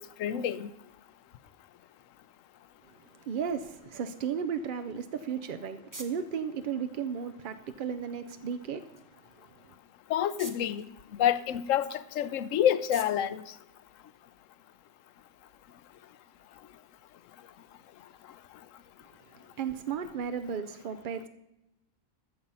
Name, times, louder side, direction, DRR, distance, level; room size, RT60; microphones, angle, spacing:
voice 1, 0.2-0.7 10.1-10.9 11.2-13.4, left 10 dB, 70° left, 1.0 m, -27 dB
voice 2, 3.3-8.9 9.4-9.5 19.6-21.3, right 7 dB, 65° right, 0.5 m, -34 dB
sound 1, 5.1-14.5, right 2 dB, 15° right, 0.8 m, -53 dB
13.5 x 6.9 x 5.3 m
omnidirectional pair, 1.5 m